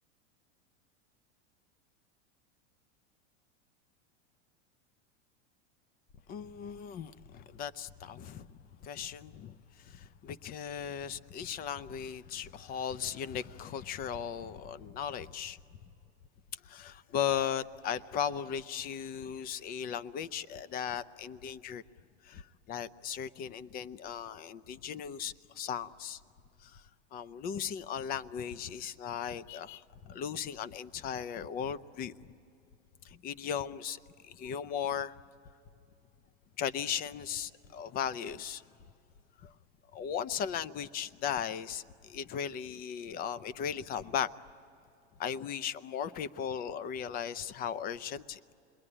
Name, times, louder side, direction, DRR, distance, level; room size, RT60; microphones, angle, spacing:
voice 1, 6.3-15.6 16.6-21.8 22.2-26.2 26.6-26.8 27.1-32.1 33.0-35.2 36.6-38.6 39.4-39.5 39.9-44.3 45.2-48.5, left 8 dB, 25° left, 0.6 m, -37 dB
27.0 x 22.0 x 9.9 m
supercardioid pair, 145°, 34 cm